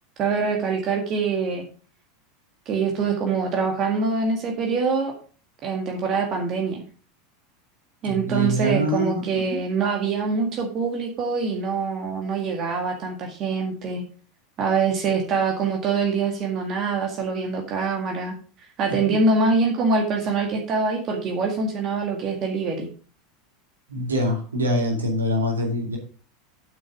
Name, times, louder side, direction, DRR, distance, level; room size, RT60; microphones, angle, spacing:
voice 1, 0.2-1.7 2.7-5.1 5.6-6.8 8.0-14.0 14.6-18.4 18.8-22.9, right 4 dB, 40° right, 2 dB, 1.9 m, -24 dB
voice 2, 8.0-9.6 18.9-19.2 23.9-26.0, equal, 80° right, 1 dB, 2.5 m, -25 dB
9.0 x 6.5 x 4.9 m, 0.39 s
figure-of-eight pair, 80°, 0 cm